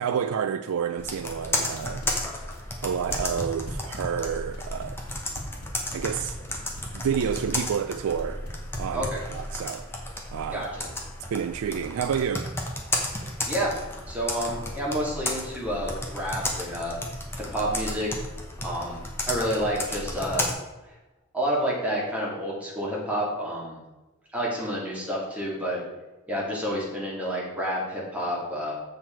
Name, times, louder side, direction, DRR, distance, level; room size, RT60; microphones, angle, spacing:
voice 1, 0.0-2.0 2.8-5.0 5.9-6.4 6.9-8.4 8.8-9.1 9.3-9.9 10.3-10.6 11.3-12.6, right 7 dB, 80° right, 0.3 m, -29 dB
Computer keyboard, 1.0-20.5, left 1 dB, 10° left, 1.0 m, -33 dB
sound 1, 1.7-9.6, left 1 dB, 80° left, 1.7 m, -41 dB
voice 2, 10.5-10.9 13.5-13.8 14.1-17.0 17.4-18.1 18.6-19.0 19.3-20.5 20.8-21.0 21.3-23.8 24.3-25.8 26.3-28.7, equal, 5° right, 2.4 m, -29 dB
7.5 x 6.5 x 4.5 m
head